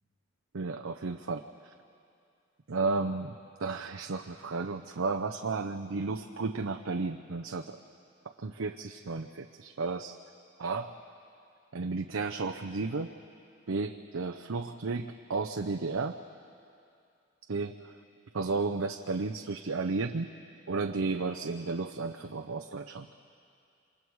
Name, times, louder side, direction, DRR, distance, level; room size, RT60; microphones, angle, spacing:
voice 1, 0.5-1.4 2.7-7.8 8.4-10.2 10.6-11.0 11.7-13.1 13.7-16.2 17.5-18.0 18.3-20.3 20.7-23.1, right 3 dB, 70° right, 5 dB, 0.6 m, -33 dB
27.5 x 26.0 x 4.8 m, 2.5 s
head